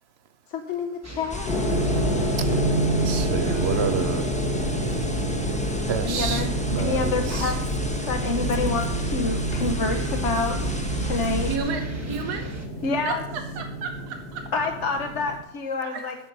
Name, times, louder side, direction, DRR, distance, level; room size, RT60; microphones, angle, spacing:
voice 1, 0.5-1.9 6.0-11.5 12.8-13.2 14.5-16.1, left 4 dB, 50° left, 4 dB, 1.1 m, -28 dB
sound 1, 1.0-12.7, right 2 dB, 10° right, 1.0 m, -38 dB
sound 2, 1.3-11.6, left 1 dB, 5° left, 0.7 m, -31 dB
sound 3, 1.5-15.4, right 1 dB, 75° left, 2.2 m, -28 dB
voice 2, 3.0-4.2 5.9-7.5, right 7 dB, 55° right, 12 dB, 0.8 m, -29 dB
voice 3, 11.5-12.5 13.0-13.1 13.6-14.4 15.8-16.0, right 4 dB, 80° right, 5 dB, 1.6 m, -32 dB
10.0 x 7.3 x 6.6 m, 0.81 s
omnidirectional pair, 1.7 m